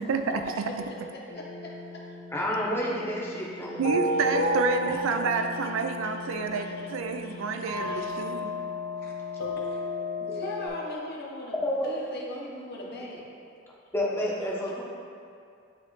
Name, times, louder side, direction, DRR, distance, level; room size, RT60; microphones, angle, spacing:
voice 1, 0.0-0.7 3.8-8.6, right 4 dB, 75° right, 6 dB, 0.4 m, -29 dB
voice 2, 0.6-2.1 3.3-3.8 4.1-4.2 4.9-5.0 6.0-6.2 6.6-6.7 7.2-7.4 7.7-8.3 9.0-9.1 9.5-9.9 10.2-13.2 14.7-14.8, left 1 dB, 50° left, -3 dB, 0.9 m, -41 dB
sound 1, 1.3-10.7, left 1 dB, 80° left, 0.8 m, -33 dB
voice 3, 2.3-3.9 10.3-10.4 11.6-11.9 13.9-14.8, left 1 dB, 10° left, -5 dB, 0.8 m, -29 dB
9.5 x 3.2 x 3.2 m, 2.4 s
head